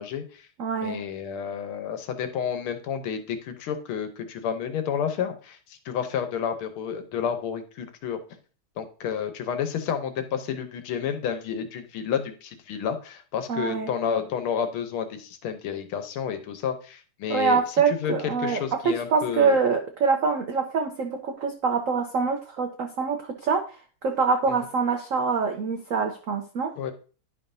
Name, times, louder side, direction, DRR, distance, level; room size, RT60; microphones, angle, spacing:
voice 1, 0.0-0.5 0.8-8.2 8.8-17.6 17.9-19.6 24.5-24.6 26.8-26.9, left 8 dB, 80° left, 8 dB, 1.7 m, -30 dB
voice 2, 0.6-1.0 13.5-13.9 17.3-26.7, right 5 dB, 85° right, 4 dB, 0.7 m, -25 dB
10.5 x 5.5 x 2.6 m, 0.37 s
omnidirectional pair, 2.4 m